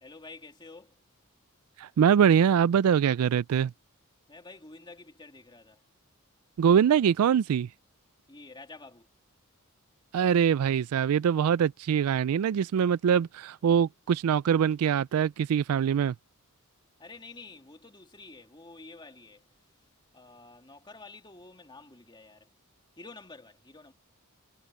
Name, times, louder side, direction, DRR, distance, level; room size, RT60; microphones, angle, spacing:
voice 1, 0.0-0.9 4.3-5.8 8.3-9.1 17.0-19.5 20.1-22.5 23.0-23.9, left 3 dB, 20° left, 2.7 m, -49 dB
voice 2, 1.8-3.7 6.6-7.7 10.1-16.1, right 8 dB, 90° right, 0.3 m, -23 dB
head